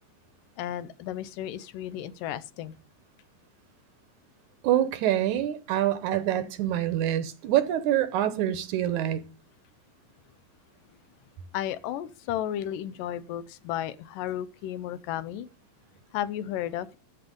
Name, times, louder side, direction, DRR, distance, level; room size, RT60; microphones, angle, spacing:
voice 1, 0.6-2.7 11.5-15.5 16.1-17.0, left 11 dB, 80° left, 2.4 m, -33 dB
voice 2, 4.6-9.2, right 12 dB, 75° right, 2.0 m, -26 dB
13.5 x 7.0 x 5.2 m
omnidirectional pair, 3.9 m